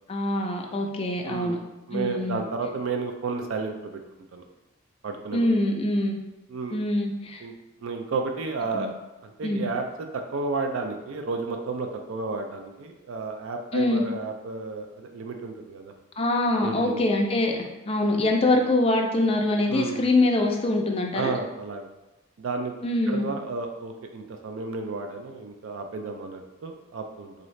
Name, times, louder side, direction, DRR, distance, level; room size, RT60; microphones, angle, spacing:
voice 1, 0.1-1.6 1.9-2.4 5.3-6.2 6.7-7.4 8.7-8.9 9.4-9.7 13.7-14.0 16.2-17.5 17.9-21.3 22.8-23.3, left 2 dB, 25° left, 2 dB, 0.4 m, -24 dB
voice 2, 1.2-1.6 1.9-4.0 4.3-4.4 5.0-5.5 6.5-6.8 7.4-7.5 7.8-8.9 9.2-9.8 10.1-15.9 16.6-17.0 19.7-20.1 21.1-21.9 22.4-22.7 23.1-27.3, right 4 dB, 70° right, 4 dB, 0.4 m, -32 dB
3.9 x 2.6 x 3.1 m, 1.0 s
head